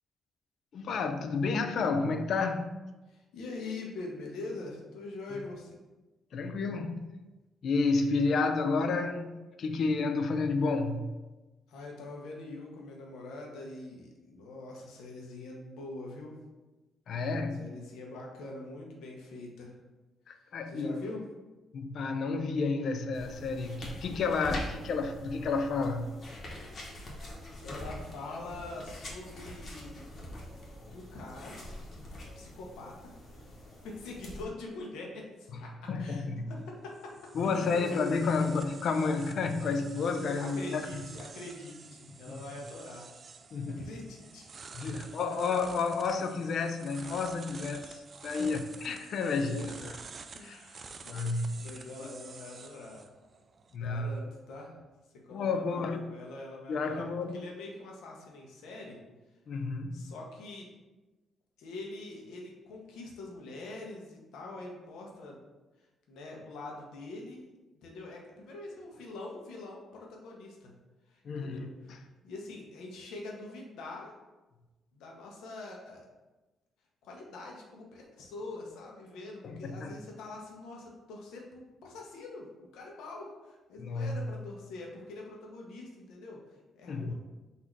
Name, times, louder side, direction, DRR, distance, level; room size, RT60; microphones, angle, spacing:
voice 1, 0.7-2.8 6.3-7.1 7.6-11.1 17.1-17.7 20.3-21.0 21.7-26.1 35.9-36.4 37.3-40.8 42.3-42.4 43.5-43.9 44.7-50.0 50.4-50.6 51.0-51.6 53.7-54.1 55.3-56.1 56.7-57.5 59.5-60.1 71.2-71.7 79.4-80.0 83.8-84.2 86.9-87.1, left 4 dB, 65° left, 0.5 m, -31 dB
voice 2, 3.1-5.7 11.7-16.3 17.1-17.3 17.6-19.7 20.7-21.2 27.6-30.1 30.9-31.6 32.3-33.1 33.8-35.7 36.0-37.2 37.4-38.0 40.4-43.1 43.6-44.5 44.8-45.6 48.4-48.5 50.3-50.9 51.4-53.1 53.8-54.8 55.2-57.1 57.3-59.0 59.9-60.7 61.6-65.4 66.1-67.4 67.8-70.7 71.1-74.1 74.9-76.0 77.0-87.1, left 2 dB, 85° left, 1.0 m, -44 dB
sound 1, 23.1-34.4, left 1 dB, 45° left, 1.3 m, -44 dB
sound 2, 36.6-53.8, right 4 dB, 45° right, 0.3 m, -50 dB
4.1 x 2.8 x 4.6 m
cardioid pair, 90°, 0 cm